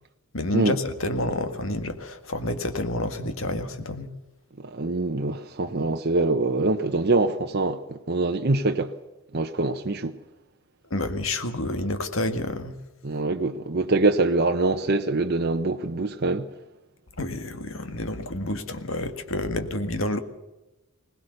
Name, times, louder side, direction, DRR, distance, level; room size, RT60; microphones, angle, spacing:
voice 1, 0.3-4.1 10.9-12.8 17.2-20.2, left 1 dB, 70° left, 1.8 m, -29 dB
voice 2, 4.6-8.9 9.3-10.2 13.0-16.5, right 3 dB, 50° right, 0.9 m, -24 dB
21.0 x 19.0 x 6.6 m
head